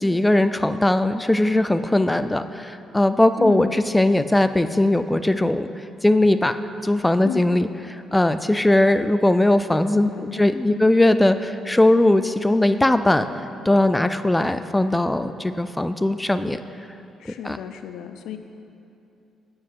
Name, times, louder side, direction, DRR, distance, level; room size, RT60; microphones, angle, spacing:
voice 1, 0.0-5.7 6.0-6.6 6.8-13.3 13.7-16.6 17.4-17.6, left 1 dB, 10° left, 11 dB, 0.3 m, -19 dB
voice 2, 3.4-3.8 7.2-7.4 9.9-10.9 17.2-18.4, left 8 dB, 85° left, 8 dB, 0.5 m, -33 dB
9.5 x 8.0 x 3.6 m, 2.7 s
cardioid pair, 90°, 0 cm